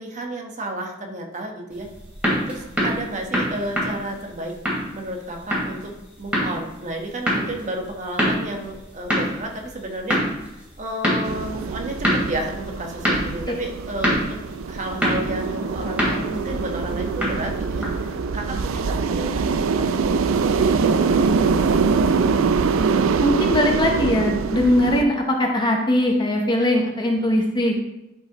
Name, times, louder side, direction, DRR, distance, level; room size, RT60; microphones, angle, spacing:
voice 1, 0.0-1.9 2.5-4.5 4.9-14.4 14.7-21.6 24.1-24.2, right 1 dB, 40° right, 2 dB, 1.2 m, -32 dB
sound 1, 1.7-18.2, equal, 5° right, 2.7 m, -27 dB
sound 2, 11.2-25.0, right 5 dB, 85° right, 0.4 m, -23 dB
voice 2, 23.2-27.7, left 1 dB, 20° left, 1 dB, 0.8 m, -20 dB
11.0 x 5.2 x 2.9 m, 0.94 s
head